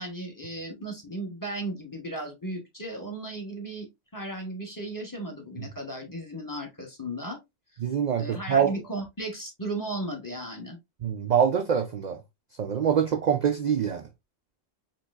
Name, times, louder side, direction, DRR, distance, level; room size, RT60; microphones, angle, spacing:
voice 1, 0.0-7.4 8.2-10.8, right 1 dB, 20° left, 1.0 m, -35 dB
voice 2, 7.8-8.7 11.0-12.2 12.6-14.1, right 8 dB, 55° right, 0.5 m, -24 dB
4.0 x 2.9 x 2.4 m
omnidirectional pair, 1.2 m